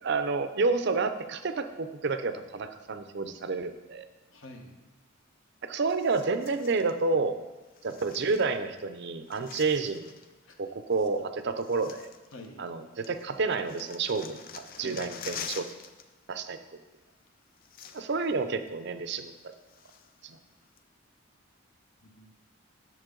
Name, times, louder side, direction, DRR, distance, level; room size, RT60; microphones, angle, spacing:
voice 1, 0.0-4.1 5.6-7.4 7.8-10.1 10.6-12.1 12.6-14.4 14.8-15.7 16.3-16.6 17.9-19.3 20.2-20.4, right 4 dB, 55° right, 10 dB, 0.5 m, -29 dB
voice 2, 4.3-4.7 10.4-10.6 12.3-12.6 14.8-15.1 22.0-22.3, left 1 dB, 70° left, 3 dB, 1.2 m, -46 dB
sound 1, 5.9-7.0 7.7-8.8 9.1-10.3 11.1-11.2 11.6-12.8 13.0-16.1 16.3-16.5 17.3-17.4 17.6-18.3 18.7-18.8 19.3-20.2 20.8-20.9, left 7 dB, 45° left, 0.5 m, -45 dB
9.0 x 7.1 x 3.8 m, 1.2 s
head